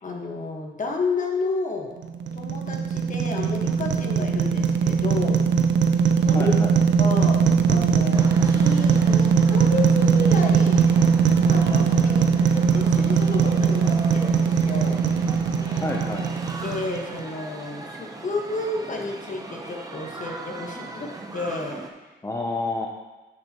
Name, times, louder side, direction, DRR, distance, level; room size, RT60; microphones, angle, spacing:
voice 1, 0.0-1.9 2.3-5.4 6.2-6.5 7.0-10.9 11.5-15.0 16.6-22.1, left 3 dB, 45° left, 1 dB, 1.3 m, -31 dB
sound 1, 2.0-17.2, right 6 dB, 90° right, 0.6 m, -20 dB
voice 2, 6.3-6.7 15.6-16.3 22.2-22.9, left 2 dB, 15° left, 1 dB, 0.6 m, -29 dB
sound 2, 8.1-21.9, right 2 dB, 20° right, 0.8 m, -38 dB
10.5 x 6.6 x 2.9 m, 1.2 s
wide cardioid pair, 115°, 18 cm